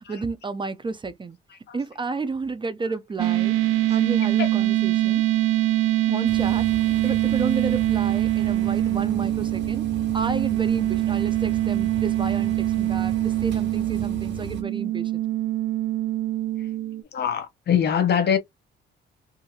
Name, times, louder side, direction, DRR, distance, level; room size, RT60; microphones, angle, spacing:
voice 1, 0.1-1.4 1.7-3.6 3.9-5.2 6.1-6.7 7.0-9.8 10.1-15.2, right 3 dB, 25° right, 0.5 m, -31 dB
sound 1, 3.2-17.0, right 14 dB, 90° right, 0.5 m, -24 dB
sound 2, 6.2-14.6, right 5 dB, 65° right, 1.4 m, -36 dB
voice 2, 17.1-18.4, left 8 dB, 55° left, 0.9 m, -22 dB
2.7 x 2.5 x 2.7 m
cardioid pair, 90°, 20 cm